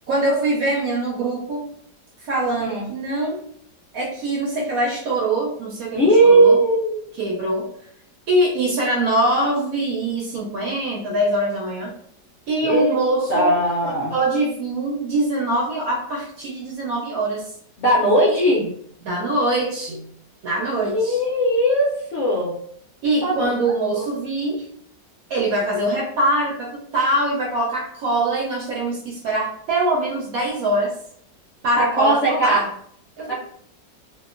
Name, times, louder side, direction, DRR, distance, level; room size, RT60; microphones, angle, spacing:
voice 1, 0.1-1.6 2.2-3.4 3.9-6.6 7.2-7.7 8.3-11.9 12.5-17.5 18.3-18.7 19.0-20.1 20.4-21.2 23.0-24.7 25.3-30.9 31.6-32.7 33.2-33.3, right 1 dB, 70° right, -3 dB, 0.9 m, -23 dB
voice 2, 5.9-7.1 12.6-13.0 13.3-14.2 17.8-18.6 20.9-22.5 23.2-24.1 31.8-32.6 33.3-33.4, right 1 dB, 65° left, -7 dB, 0.7 m, -19 dB
2.9 x 2.1 x 2.4 m, 0.65 s
omnidirectional pair, 1.9 m